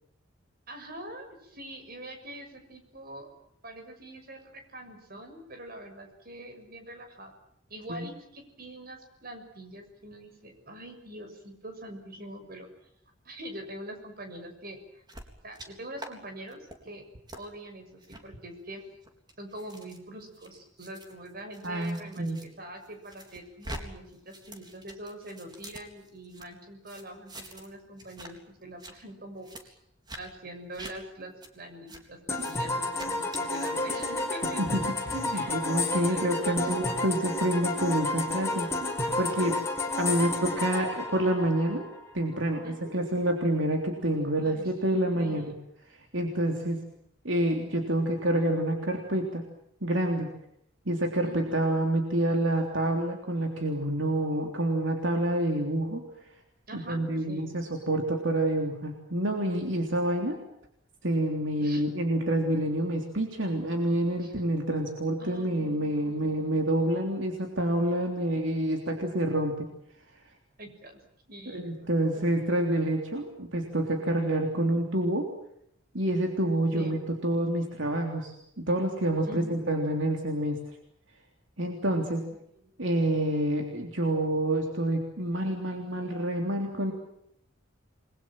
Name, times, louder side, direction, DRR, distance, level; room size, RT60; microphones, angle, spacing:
voice 1, 0.7-3.3 3.6-7.3 7.7-12.7 13.2-15.0 15.4-17.0 17.3-18.8 19.4-29.8 30.2-34.8 35.3-35.6 36.1-36.8 40.2-40.7 42.6-42.9 44.4-44.7 45.1-45.6 51.2-51.6 56.7-57.0 57.3-57.6 61.6-61.9 64.2-64.5 65.2-66.6 70.6-71.0 71.3-72.4 76.7-77.0 79.3-79.6 82.5-82.6, right 1 dB, 50° right, 5 dB, 6.7 m, -44 dB
sound 1, 15.1-15.7 16.0-16.1 16.5-16.8 17.3-17.4 18.0-18.2 18.9-22.5 22.8-23.8 24.1-26.5 26.9-27.7 28.0-28.3 28.6-28.9 29.4-29.6 30.1-30.2 30.7-30.9 31.4-31.5 31.9-32.0 32.3-32.6 32.9-33.7, right 1 dB, 20° right, 3.8 m, -45 dB
voice 2, 21.6-22.4 34.6-34.7 35.1-38.7 39.2-39.6 40.0-41.9 42.1-45.5 46.1-46.8 47.2-49.4 49.8-50.3 50.8-56.0 56.7-60.4 61.0-69.7 71.5-75.3 75.9-80.6 81.6-82.2 82.8-86.9, right 1 dB, 70° right, 3 dB, 3.4 m, -28 dB
sound 2, 32.3-42.0, left 2 dB, 15° left, 5.3 m, -31 dB
29.0 x 22.0 x 7.6 m, 0.75 s
head